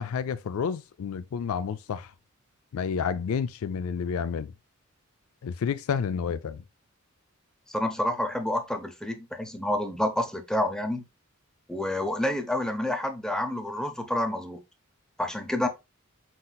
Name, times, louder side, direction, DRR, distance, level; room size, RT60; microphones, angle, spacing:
voice 1, 0.0-2.1 2.7-4.5 5.4-6.6, left 6 dB, 75° left, 0.4 m, -30 dB
voice 2, 7.7-11.0 11.7-14.6 15.2-15.7, left 1 dB, 5° left, 0.7 m, -28 dB
5.2 x 4.1 x 2.3 m
head